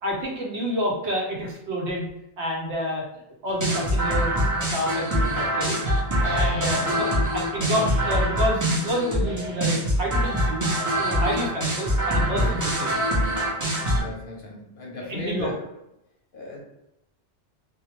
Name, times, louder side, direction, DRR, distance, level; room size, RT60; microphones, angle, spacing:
voice 1, 0.0-2.1 2.4-3.1 3.4-5.8 6.3-10.7 11.0-13.0 14.0-14.1 15.0-15.5, equal, 75° right, -1 dB, 1.0 m, -29 dB
sound 1, 3.5-14.0, equal, 25° right, 0.4 m, -24 dB
sound 2, 6.2-7.2 7.7-8.4 9.2-10.0 10.7-11.3 12.2-12.9, left 2 dB, 50° right, 0.8 m, -35 dB
voice 2, 6.5-7.3 12.3-12.6 13.9-15.6 16.3-16.6, left 1 dB, 60° left, -1 dB, 0.6 m, -37 dB
2.2 x 2.0 x 2.9 m, 0.86 s
omnidirectional pair, 1.1 m